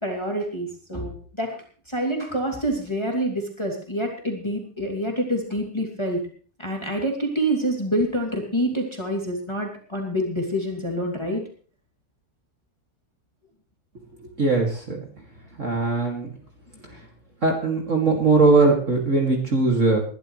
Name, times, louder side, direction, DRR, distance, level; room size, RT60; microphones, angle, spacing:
voice 1, 0.0-1.6 1.9-6.2 6.6-11.4, equal, 10° left, 0 dB, 2.9 m, -27 dB
voice 2, 14.4-15.0 15.6-16.3 17.4-20.0, right 3 dB, 35° right, 1 dB, 2.8 m, -20 dB
21.5 x 12.0 x 3.2 m, 0.42 s
omnidirectional pair, 2.4 m